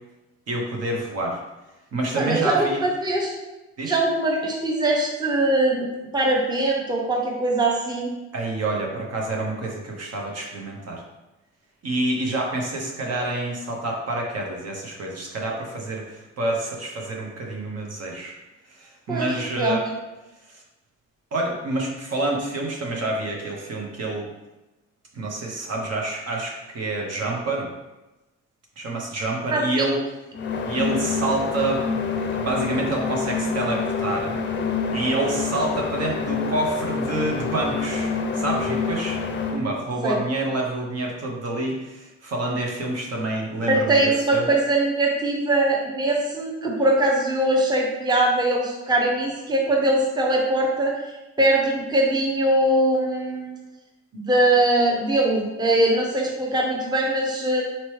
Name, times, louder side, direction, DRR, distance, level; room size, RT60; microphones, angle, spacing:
voice 1, 0.5-1.4 1.9-2.8 3.8-4.0 8.3-11.0 11.8-18.4 18.7-19.8 20.5-20.6 21.3-24.3 25.1-27.7 28.8-30.0 30.7-34.4 34.9-39.2 39.5-44.5, right 2 dB, 55° right, -1 dB, 0.9 m, -27 dB
voice 2, 2.2-3.3 3.8-5.9 6.1-8.1 19.1-19.3 19.6-19.8 29.5-29.9 40.0-40.2 43.7-50.9 51.4-53.6 54.1-57.6, right 1 dB, 15° right, -1 dB, 0.8 m, -21 dB
sound 1, 30.3-39.6, left 5 dB, 40° left, 0.5 m, -27 dB
4.3 x 2.9 x 3.2 m, 1.0 s
cardioid pair, 90°, 30 cm